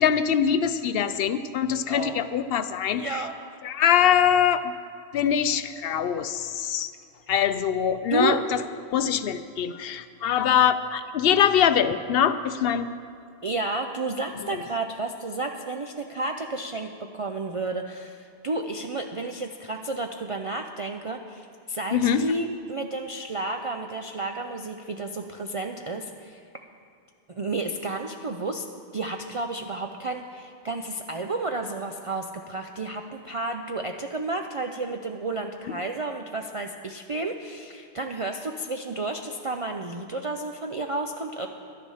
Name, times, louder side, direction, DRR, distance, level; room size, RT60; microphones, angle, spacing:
voice 1, 0.0-3.3 3.6-4.7 5.1-6.9 7.3-8.6 8.9-12.9 14.5-14.6 21.9-22.3 35.7-35.8, left 8 dB, 65° left, 12 dB, 0.7 m, -23 dB
voice 2, 1.9-2.2 2.9-3.3 8.1-8.4 13.4-26.4 27.3-28.6 28.9-41.5, right 2 dB, 45° right, 3 dB, 0.4 m, -31 dB
12.0 x 10.5 x 5.6 m, 2.5 s
omnidirectional pair, 1.2 m